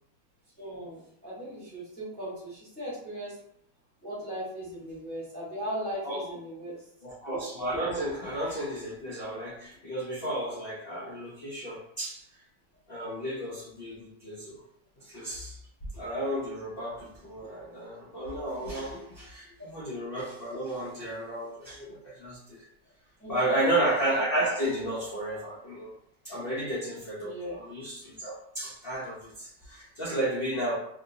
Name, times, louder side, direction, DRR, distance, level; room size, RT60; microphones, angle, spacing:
voice 1, 0.6-3.3 4.0-6.8 23.2-23.6 27.2-27.6, equal, 5° left, -9 dB, 1.0 m, -38 dB
voice 2, 7.0-12.2 12.9-14.6 15.0-15.6 15.9-22.7 23.3-25.9 26.2-30.8, right 1 dB, 90° left, -7 dB, 0.5 m, -32 dB
3.0 x 2.8 x 2.7 m, 0.70 s
omnidirectional pair, 2.2 m